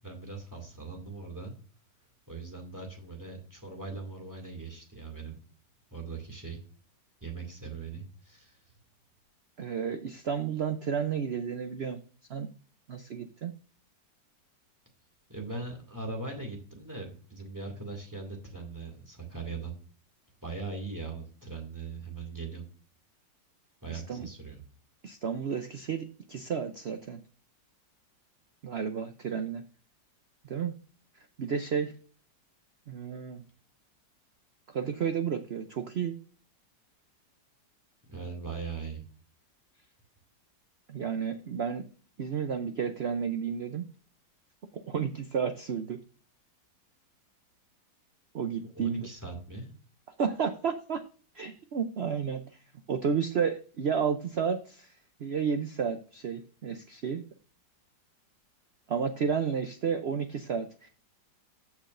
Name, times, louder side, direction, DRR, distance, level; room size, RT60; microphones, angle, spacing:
voice 1, 0.0-1.5 2.3-5.4 5.9-6.6 7.2-8.6 15.3-19.8 20.4-22.6 23.8-24.6 38.1-39.0 48.6-49.7, right 3 dB, 10° right, 2 dB, 2.1 m, -40 dB
voice 2, 9.6-12.0 12.3-12.5 12.9-13.5 23.9-24.3 25.0-27.2 28.6-29.6 30.4-30.7 31.4-31.9 32.9-33.4 34.7-36.2 40.9-41.8 42.2-43.8 44.7-46.0 48.3-49.1 50.2-51.0 51.3-52.4 52.9-54.9 55.2-57.2 58.9-60.9, right 6 dB, 80° right, 8 dB, 0.5 m, -31 dB
14.0 x 6.1 x 2.5 m, 0.41 s
omnidirectional pair, 2.0 m